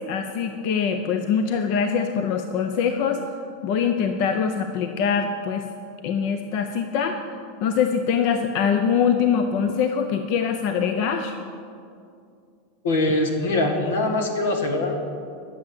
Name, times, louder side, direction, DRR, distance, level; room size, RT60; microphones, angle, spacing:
voice 1, 0.1-3.2 3.6-5.6 6.0-7.2 7.6-11.4, left 7 dB, 55° left, 7 dB, 0.7 m, -23 dB
voice 2, 12.8-14.9, left 2 dB, 90° left, 3 dB, 1.9 m, -22 dB
11.0 x 7.7 x 7.2 m, 2.4 s
supercardioid pair, 140°, 0 cm